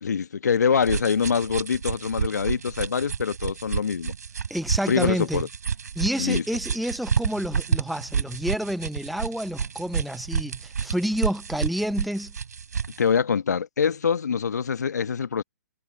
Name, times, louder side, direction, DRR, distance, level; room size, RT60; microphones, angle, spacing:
voice 1, 0.0-4.1 4.9-5.5 6.2-6.4 13.0-15.4, left 6 dB, 70° left, 1.2 m, -24 dB
sound 1, 0.8-13.0, right 6 dB, 70° right, 4.8 m, -30 dB
voice 2, 4.5-5.4 6.0-12.3, equal, ahead, 0.5 m, -29 dB
figure-of-eight pair, 130°, 9 cm